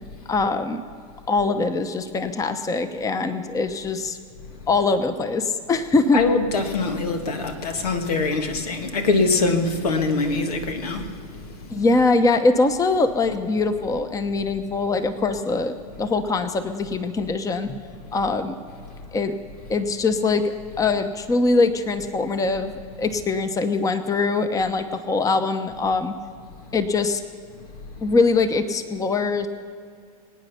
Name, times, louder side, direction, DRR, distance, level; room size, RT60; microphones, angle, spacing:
voice 1, 0.3-0.8 1.3-4.2 4.7-6.2 11.7-17.8 18.1-18.6 19.1-19.4 19.7-22.7 23.0-26.2 26.7-27.2 28.0-29.5, left 3 dB, 15° left, 0.9 m, -22 dB
voice 2, 6.1-11.1 11.7-11.8, left 3 dB, 85° left, 1.7 m, -23 dB
24.0 x 9.1 x 5.8 m
hypercardioid pair, 115°, 19 cm